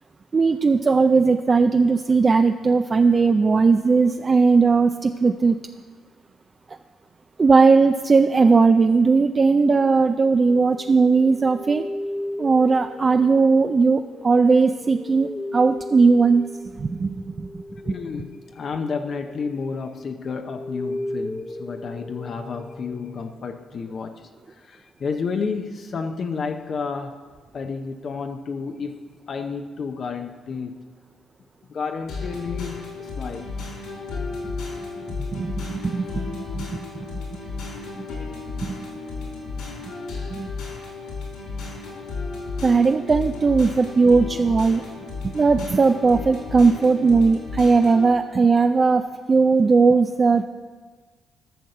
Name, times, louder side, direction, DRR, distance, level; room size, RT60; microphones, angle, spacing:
voice 1, 0.3-5.6 7.4-11.9 12.4-16.4 16.7-17.9 35.3-36.8 38.6-38.8 40.3-40.5 42.6-44.8 45.2-50.5, right 4 dB, 35° right, 0.4 m, -18 dB
sound 1, 10.5-19.8 20.2-23.9, left 1 dB, 20° left, 0.9 m, -36 dB
voice 2, 17.8-27.2 27.5-30.7 31.7-33.5 34.2-34.3, left 5 dB, 50° left, 0.7 m, -31 dB
sound 2, 32.1-48.1, left 4 dB, 85° left, 3.8 m, -33 dB
12.0 x 6.4 x 6.7 m
cardioid pair, 90°, 0 cm